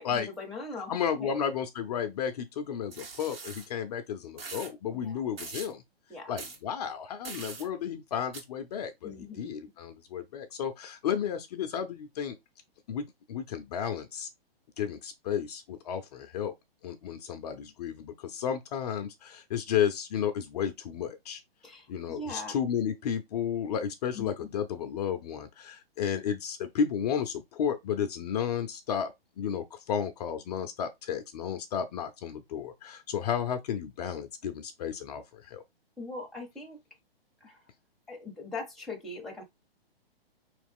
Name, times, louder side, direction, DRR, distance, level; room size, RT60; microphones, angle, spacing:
voice 1, 0.0-1.3 4.9-5.2 6.1-6.3 9.0-9.7 21.6-22.5 24.1-24.5 36.0-36.8 37.4-37.7 38.1-39.4, left 3 dB, ahead, 0.8 m, -41 dB
voice 2, 0.9-5.8 6.3-12.4 12.9-14.3 14.8-16.5 16.8-21.4 21.9-29.1 29.4-35.6, left 8 dB, 40° left, 0.6 m, -33 dB
sound 1, 2.9-3.7 4.4-4.7 5.4-5.7 6.4-6.6 7.2-7.7 8.3-8.4, right 4 dB, 75° right, 2.0 m, -42 dB
4.6 x 3.2 x 3.5 m
hypercardioid pair, 135°, 30 cm